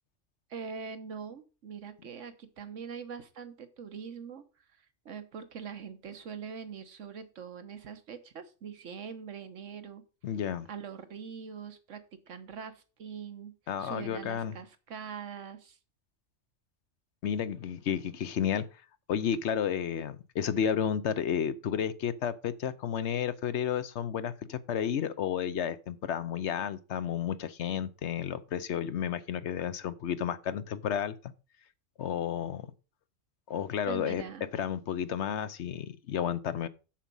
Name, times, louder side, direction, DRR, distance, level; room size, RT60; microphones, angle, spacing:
voice 1, 0.5-4.4 4.7-10.0 10.7-13.5 13.8-15.8 33.9-34.5, right 6 dB, 85° right, 1.5 m, -43 dB
voice 2, 10.2-10.7 13.7-14.5 17.2-18.7 19.1-31.3 32.0-32.7 33.5-34.2 34.5-36.7, left 8 dB, 70° left, 1.0 m, -32 dB
7.3 x 7.2 x 5.4 m
omnidirectional pair, 1.3 m